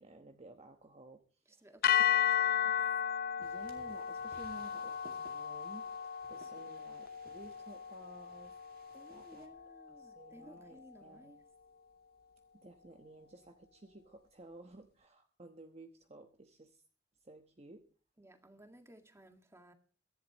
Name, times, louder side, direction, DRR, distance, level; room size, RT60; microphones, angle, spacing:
voice 1, 0.0-1.6 1.9-2.2 2.6-2.8 3.4-8.6 9.1-9.5 9.9-11.3 12.5-16.8 17.2-17.9, right 2 dB, 35° right, 1.1 m, -55 dB
voice 2, 1.5-2.8 8.9-11.4 18.2-19.7, right 1 dB, 15° right, 1.9 m, -58 dB
sound 1, 1.8-10.1, left 9 dB, 55° left, 0.6 m, -34 dB
sound 2, 3.4-9.5, right 2 dB, 55° right, 2.4 m, -61 dB
23.0 x 11.0 x 3.0 m
head